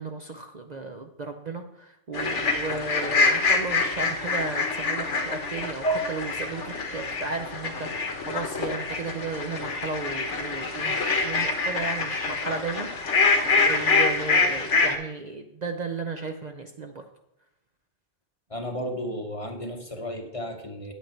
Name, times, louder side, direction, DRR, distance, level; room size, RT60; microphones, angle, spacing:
voice 1, 0.0-13.3 13.7-17.0, right 3 dB, 45° right, 4 dB, 0.6 m, -34 dB
sound 1, 2.1-14.9, left 3 dB, 75° left, 1.6 m, -25 dB
voice 2, 18.5-20.9, equal, 30° left, 4 dB, 0.9 m, -34 dB
8.9 x 8.3 x 4.4 m, 0.85 s
omnidirectional pair, 1.2 m